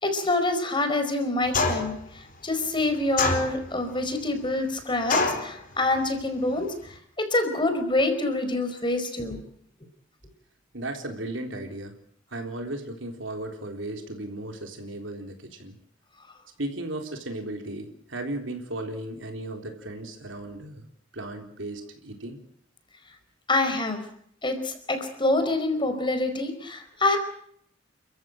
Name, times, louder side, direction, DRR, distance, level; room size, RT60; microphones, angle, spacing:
voice 1, 0.0-9.4 23.5-24.0 24.4-27.2, left 2 dB, 25° left, 7 dB, 4.8 m, -26 dB
sound 1, 1.5-2.0 3.2-3.8 5.1-5.5, left 3 dB, 45° left, 4.5 m, -25 dB
voice 2, 10.7-12.0 12.3-15.8 16.6-20.9 21.1-22.4, right 1 dB, 70° right, 4 dB, 3.9 m, -35 dB
30.0 x 14.5 x 9.0 m, 0.67 s
head